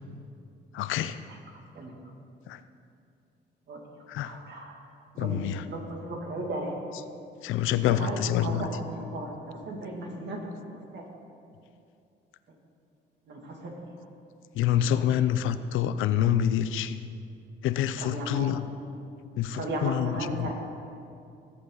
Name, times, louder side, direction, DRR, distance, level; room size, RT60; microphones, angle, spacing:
voice 1, 0.7-1.2 2.5-2.6 4.1-4.4 5.2-5.6 7.4-8.7 14.5-17.0 17.6-18.7 19.4-20.5, left 10 dB, 85° left, 13 dB, 0.5 m, -27 dB
voice 2, 1.7-2.1 3.7-3.8 4.2-4.8 5.1-5.4 5.7-6.7 7.7-10.4 10.7-11.1 13.3-13.7 14.7-15.0 18.0-18.6 19.5-20.5, right 2 dB, 60° right, 0 dB, 2.4 m, -36 dB
19.5 x 8.0 x 4.0 m, 2.5 s
cardioid pair, 90°, 20 cm